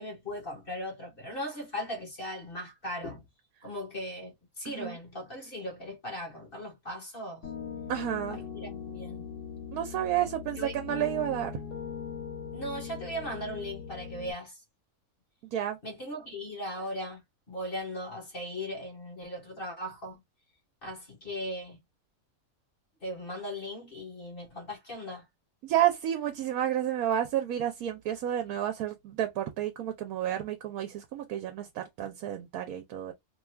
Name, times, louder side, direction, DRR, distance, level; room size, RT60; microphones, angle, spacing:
voice 1, 0.0-3.2 3.6-7.5 8.3-9.2 10.6-10.8 12.5-14.6 15.8-17.2 17.5-20.2 20.8-21.8 23.0-25.2, equal, 40° left, 1.1 m, -38 dB
voice 2, 4.6-5.0 7.9-8.4 9.7-11.5 15.5-15.8 25.6-33.1, right 11 dB, 75° right, 1.1 m, -30 dB
Piano, 7.4-14.3, left 7 dB, 60° left, 1.4 m, -40 dB
3.0 x 2.3 x 3.3 m
omnidirectional pair, 1.6 m